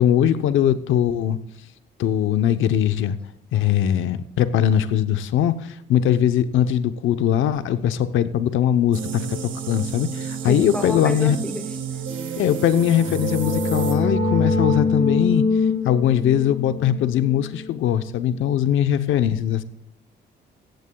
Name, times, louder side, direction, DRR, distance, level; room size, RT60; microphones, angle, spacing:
voice 1, 0.0-1.4 2.0-3.2 3.5-9.4 9.7-11.4 12.4-15.4 15.8-19.6, left 10 dB, 80° left, 12 dB, 0.8 m, -20 dB
sound 1, 8.9-14.0, right 7 dB, 75° right, 1.6 m, -31 dB
voice 2, 10.5-12.1, left 1 dB, 5° left, 5 dB, 0.9 m, -30 dB
sound 2, 12.7-18.2, left 3 dB, 30° left, 4.0 m, -24 dB
16.5 x 14.5 x 2.3 m, 0.81 s
cardioid pair, 90°, 20 cm